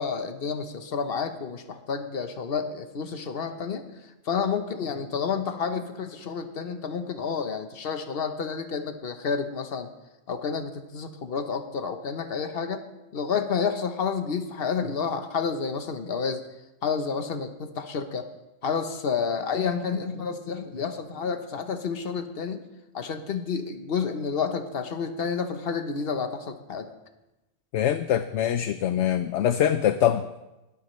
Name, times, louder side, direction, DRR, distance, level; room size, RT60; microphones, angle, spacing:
voice 1, 0.0-3.8 4.2-9.9 10.3-12.8 13.1-16.4 16.8-18.2 18.6-22.6 22.9-26.9, left 5 dB, 50° left, 8 dB, 1.2 m, -30 dB
voice 2, 27.7-30.2, left 10 dB, 70° left, 10 dB, 0.9 m, -23 dB
19.0 x 13.0 x 3.2 m, 1.0 s
omnidirectional pair, 1.3 m